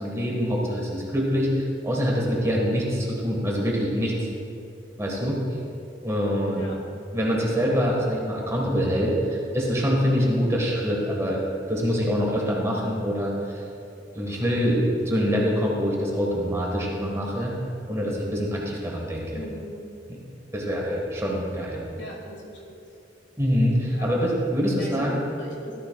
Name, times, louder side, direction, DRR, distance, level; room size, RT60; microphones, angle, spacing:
voice 1, 0.0-4.3 5.0-5.4 6.0-6.6 7.1-11.4 11.7-13.6 14.1-17.6 17.9-19.4 20.1-20.2 20.5-21.8 23.4-25.2, equal, 15° right, -2 dB, 1.5 m, -25 dB
voice 2, 19.4-19.7 22.0-22.8 23.9-24.1 24.8-25.7, equal, 70° left, 0 dB, 1.9 m, -39 dB
13.5 x 13.0 x 2.3 m, 2.6 s
head